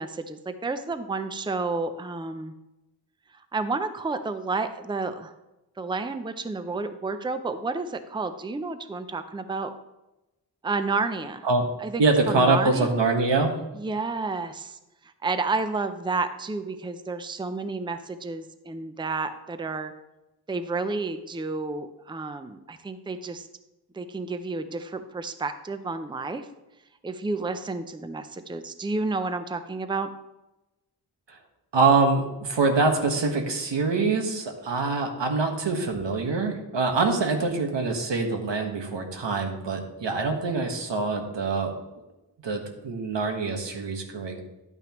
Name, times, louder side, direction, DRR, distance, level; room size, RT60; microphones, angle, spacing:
voice 1, 0.0-2.5 3.5-5.3 5.8-9.7 10.6-11.5 11.8-12.9 13.7-14.8 15.2-19.9 20.5-23.5 23.9-26.5 27.0-30.1, right 3 dB, 10° right, 10 dB, 0.5 m, -30 dB
voice 2, 12.0-13.5 31.3-31.4 31.7-41.7 42.4-44.4, right 3 dB, 90° right, 4 dB, 1.5 m, -24 dB
11.0 x 9.0 x 3.0 m, 0.97 s
wide cardioid pair, 110°, 42 cm